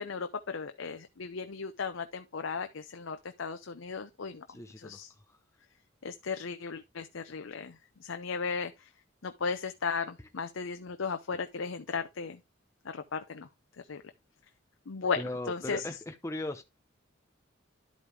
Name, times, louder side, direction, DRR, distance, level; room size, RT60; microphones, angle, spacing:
voice 1, 0.0-4.4 4.8-5.1 6.0-8.9 9.2-12.4 12.8-13.5 13.9-14.0 14.9-15.9, left 5 dB, 75° left, 0.7 m, -36 dB
voice 2, 4.5-5.0 15.2-16.6, left 1 dB, 15° left, 0.9 m, -38 dB
11.5 x 5.1 x 3.4 m
head